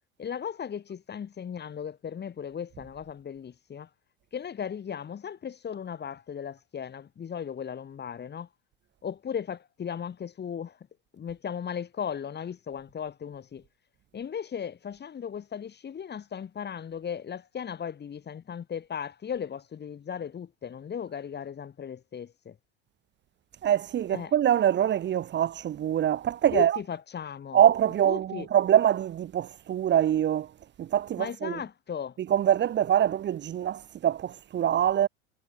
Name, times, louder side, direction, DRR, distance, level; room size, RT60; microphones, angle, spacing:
voice 1, 0.2-3.9 4.3-8.5 9.0-10.8 11.1-13.6 14.1-22.6 24.1-24.3 26.5-27.6 28.0-28.5 31.2-32.2, left 8 dB, 30° left, 4.1 m, -36 dB
voice 2, 23.6-26.8 27.5-30.5 30.8-31.6 32.3-35.1, right 10 dB, 30° right, 1.1 m, -24 dB
hypercardioid pair, 85°, 34 cm